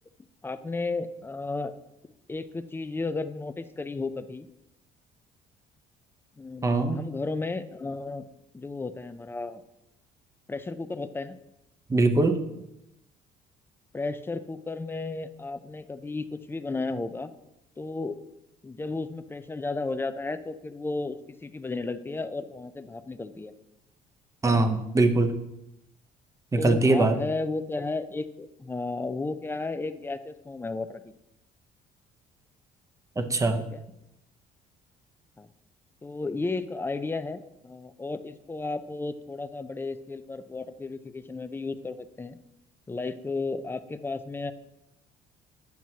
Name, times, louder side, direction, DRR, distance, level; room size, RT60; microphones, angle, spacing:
voice 1, 0.4-1.7 2.3-4.5 6.4-8.3 8.5-9.6 10.5-11.4 13.9-17.3 17.8-18.2 18.6-23.5 24.4-24.6 26.6-31.1 33.7-33.8 35.4-35.5 36.0-42.4 42.9-44.5, left 3 dB, 15° left, 12 dB, 0.4 m, -33 dB
voice 2, 6.6-7.0 11.9-12.4 24.4-25.4 26.5-27.2 33.2-33.6, right 2 dB, 20° right, 7 dB, 0.7 m, -22 dB
9.2 x 5.9 x 2.8 m, 0.88 s
cardioid pair, 110°, 17 cm